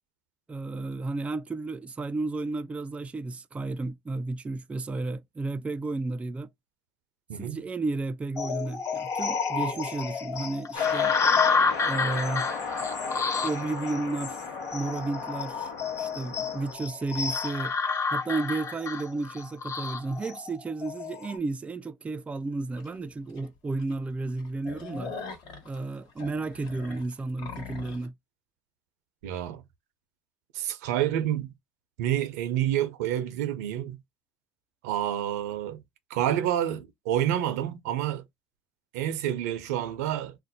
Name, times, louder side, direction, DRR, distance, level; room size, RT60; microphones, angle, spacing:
voice 1, 0.5-6.5 7.4-11.2 11.8-12.5 13.4-15.7 16.0-17.8 18.1-25.1 25.6-28.1, right 3 dB, 15° right, 0.3 m, -32 dB
sound 1, 8.4-21.4, left 5 dB, 35° left, 0.8 m, -29 dB
sound 2, 10.7-16.7, left 4 dB, 80° left, 0.9 m, -36 dB
sound 3, 22.8-22.9 23.4-23.5 23.8-23.9 24.3-28.1, left 5 dB, 60° left, 1.2 m, -41 dB
voice 2, 29.2-29.6 30.5-31.5 32.0-34.0 34.8-35.8 36.1-38.2 38.9-40.4, right 11 dB, 85° right, 0.6 m, -28 dB
2.5 x 2.1 x 3.9 m
supercardioid pair, 85°, 8 cm